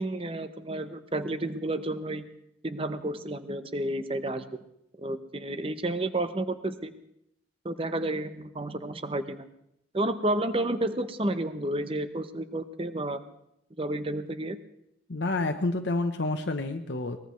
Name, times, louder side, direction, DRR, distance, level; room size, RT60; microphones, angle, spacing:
voice 1, 0.0-2.2 2.6-4.6 5.0-6.9 7.6-9.5 9.9-13.2 13.8-14.6, right 1 dB, 30° right, 10 dB, 0.8 m, -31 dB
voice 2, 15.1-17.2, left 2 dB, 65° left, 5 dB, 0.9 m, -29 dB
23.0 x 19.5 x 3.2 m, 0.77 s
head